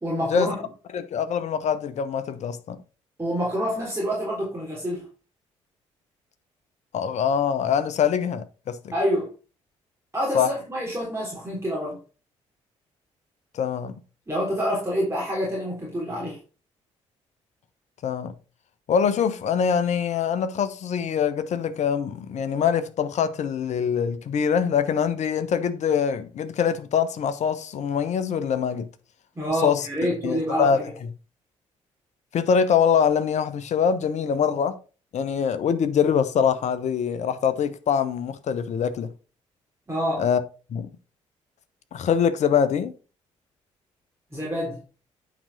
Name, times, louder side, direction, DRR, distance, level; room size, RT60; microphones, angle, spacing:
voice 1, 0.0-0.6 3.2-5.1 8.9-9.3 10.1-12.0 14.3-16.4 29.4-30.8 39.9-40.3 44.3-44.8, equal, 15° right, 3.6 m, -27 dB
voice 2, 0.9-2.8 6.9-8.8 10.3-10.5 13.5-13.9 18.0-18.3 18.9-28.9 29.6-29.9 30.2-30.8 32.3-34.8 35.1-39.1 40.2-40.4 40.7-40.9 41.9-42.9, left 7 dB, 45° left, 0.9 m, -24 dB
9.0 x 5.1 x 4.0 m
figure-of-eight pair, 40°, 16 cm